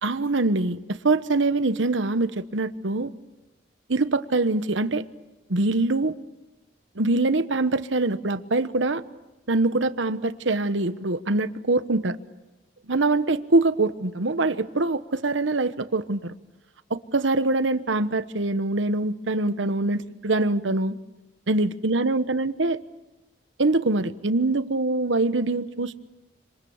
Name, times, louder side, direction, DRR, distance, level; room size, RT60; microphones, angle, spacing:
voice 1, 0.0-3.1 3.9-5.0 5.5-6.2 7.0-9.0 9.5-12.2 12.9-16.3 16.9-21.0 21.5-22.8 23.6-26.0, right 2 dB, 90° right, 12 dB, 1.1 m, -24 dB
27.0 x 26.5 x 7.2 m, 1.1 s
head